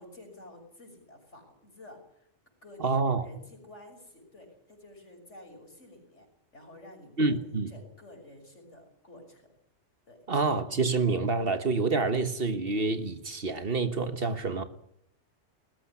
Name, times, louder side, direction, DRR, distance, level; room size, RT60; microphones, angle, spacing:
voice 1, 0.0-2.3 2.6-6.3 6.5-9.5 10.1-10.2, left 1 dB, 80° left, 6.4 m, -51 dB
voice 2, 2.8-3.2 7.2-7.7 10.3-14.6, right 3 dB, 50° right, 1.6 m, -27 dB
20.0 x 14.5 x 9.9 m
omnidirectional pair, 1.2 m